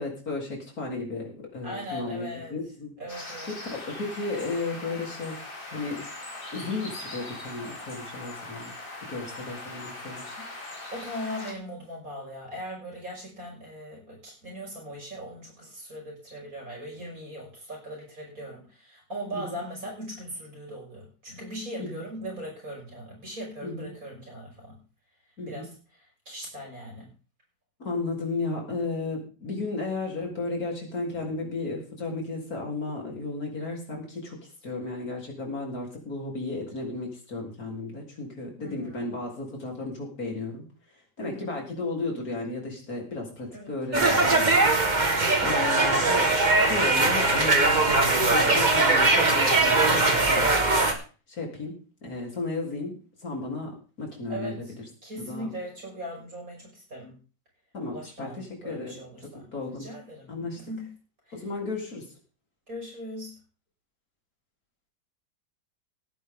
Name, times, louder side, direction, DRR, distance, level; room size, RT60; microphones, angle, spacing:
voice 1, 0.0-2.9 3.5-5.4 5.7-6.1 6.5-8.7 9.1-10.3 19.3-19.6 21.8-22.0 23.6-23.9 25.4-25.6 27.8-40.6 41.2-44.5 45.0-46.4 46.7-50.5 51.3-54.6 55.3-55.5 57.7-59.9 60.3-60.6 61.3-62.1, left 3 dB, 55° left, 0 dB, 4.3 m, -34 dB
voice 2, 1.6-2.6 3.0-3.5 10.9-24.8 25.5-25.7 26.3-27.1 38.6-39.0 41.2-41.6 43.5-43.7 45.1-45.9 54.3-54.7 55.0-57.1 57.9-60.9 61.3-61.4 62.7-63.4, equal, 50° right, -1 dB, 6.4 m, -39 dB
sound 1, 3.1-11.5, left 2 dB, 30° left, 3.2 m, -40 dB
sound 2, 43.9-50.9, right 2 dB, 25° right, 1.8 m, -21 dB
17.5 x 10.0 x 3.8 m, 0.37 s
omnidirectional pair, 1.9 m